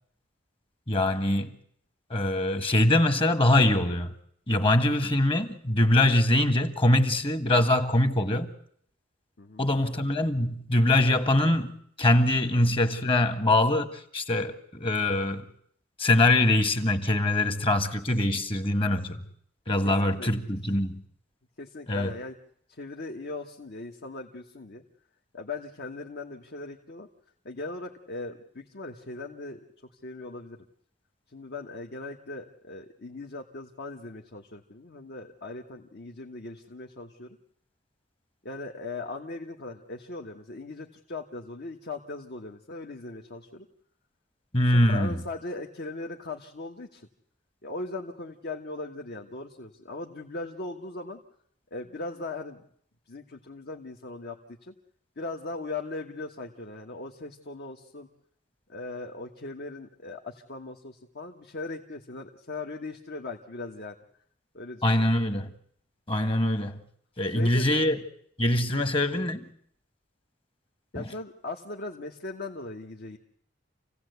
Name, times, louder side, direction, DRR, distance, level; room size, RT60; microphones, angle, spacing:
voice 1, 0.9-1.5 2.1-4.1 4.5-8.5 9.6-15.5 16.0-19.2 19.7-21.0 21.9-22.1 44.5-45.2 64.8-65.5 66.1-66.8 67.2-68.0 68.4-69.5 70.9-71.0, left 1 dB, 30° left, 1.5 m, -23 dB
voice 2, 9.4-10.0 12.4-12.5 19.7-19.8 20.0-20.3 21.6-22.3 22.7-24.8 25.3-27.1 27.4-29.6 29.9-30.7 31.3-37.4 38.4-43.7 44.7-47.1 47.6-51.2 51.7-52.6 53.1-54.7 55.2-58.1 58.7-63.9 64.5-65.1 67.2-67.9 68.7-68.9 70.9-73.2, left 3 dB, 55° left, 1.4 m, -39 dB
27.5 x 16.5 x 8.2 m
head